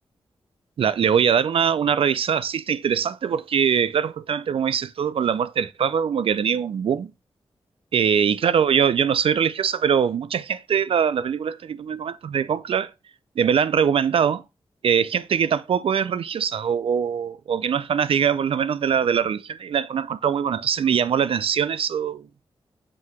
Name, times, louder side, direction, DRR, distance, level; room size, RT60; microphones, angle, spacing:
voice 1, 0.8-7.1 7.9-12.9 13.4-14.4 14.8-22.2, right 7 dB, 70° right, 0.4 m, -22 dB
7.6 x 2.8 x 4.6 m
wide cardioid pair, 95°, 10 cm